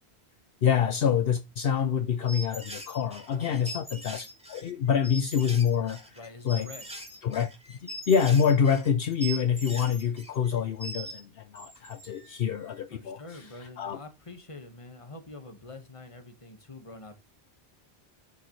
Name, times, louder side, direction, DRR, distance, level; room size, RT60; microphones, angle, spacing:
voice 1, 0.6-6.2 6.4-6.7 7.2-7.5 7.8-13.2 13.8-14.0, left 7 dB, 65° left, 0.9 m, -26 dB
sound 1, 2.3-11.2 11.6-12.4, right 1 dB, 5° right, 2.3 m, -42 dB
voice 2, 3.3-3.9 6.1-6.9 12.9-17.2, left 2 dB, 30° left, 1.6 m, -46 dB
11.0 x 6.8 x 3.2 m
omnidirectional pair, 1.1 m